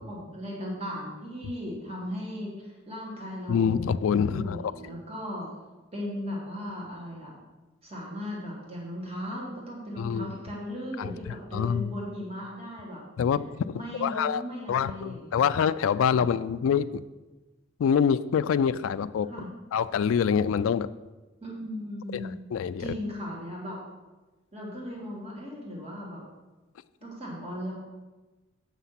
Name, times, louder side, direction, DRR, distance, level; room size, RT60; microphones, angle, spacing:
voice 1, 0.1-3.7 4.2-5.5 5.9-7.3 7.8-13.0 13.7-15.6 16.2-16.3 19.3-19.5 21.4-22.4 22.8-23.8 24.5-26.2 27.0-27.7, equal, 30° right, -4 dB, 1.9 m, -37 dB
voice 2, 3.5-4.6 10.0-10.3 11.0-11.1 11.5-11.9 13.2-13.7 14.0-14.4 14.7-17.0 17.8-19.3 19.7-20.9 22.1-22.9, left 7 dB, 75° left, 12 dB, 0.3 m, -25 dB
8.1 x 5.9 x 5.8 m, 1.2 s
head